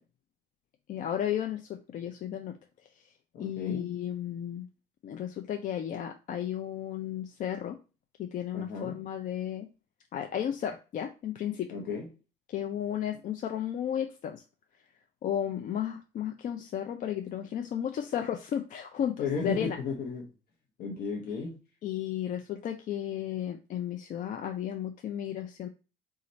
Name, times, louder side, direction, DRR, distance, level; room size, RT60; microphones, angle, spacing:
voice 1, 0.9-2.6 3.4-4.7 5.0-7.8 8.2-9.7 10.1-11.7 12.5-14.4 15.2-19.8 21.8-25.7, left 10 dB, 50° left, 5 dB, 0.4 m, -33 dB
voice 2, 3.3-3.8 8.5-9.0 11.7-12.1 19.2-20.2 20.8-21.5, left 5 dB, 75° left, -1 dB, 0.9 m, -34 dB
4.2 x 2.5 x 4.0 m, 0.32 s
cardioid pair, 110°, 17 cm